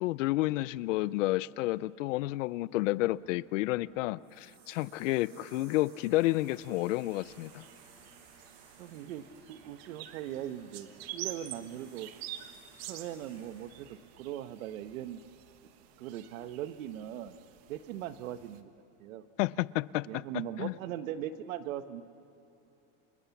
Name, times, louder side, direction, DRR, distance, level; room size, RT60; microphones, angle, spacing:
voice 1, 0.0-7.7 19.4-20.2 20.6-20.7, left 18 dB, 70° left, 20 dB, 0.6 m, -30 dB
sound 1, 2.7-13.9, right 4 dB, 65° right, 7.4 m, -58 dB
sound 2, 6.4-18.6, right 13 dB, 50° right, 1.3 m, -48 dB
voice 2, 8.8-12.1 12.9-15.2 16.0-17.4 17.7-19.2 20.1-22.0, right 11 dB, 85° right, 11 dB, 1.3 m, -40 dB
30.0 x 26.0 x 7.2 m, 2.9 s
supercardioid pair, 175°, 39 cm